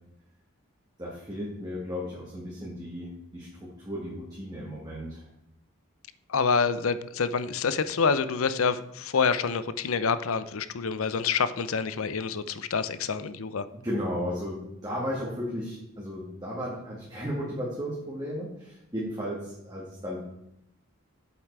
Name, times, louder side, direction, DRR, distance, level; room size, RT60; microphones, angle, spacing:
voice 1, 1.0-5.3 13.8-20.2, equal, 20° right, -5 dB, 1.9 m, -34 dB
voice 2, 6.3-13.7, left 5 dB, 80° left, 13 dB, 0.6 m, -27 dB
8.3 x 7.5 x 4.6 m, 0.84 s
head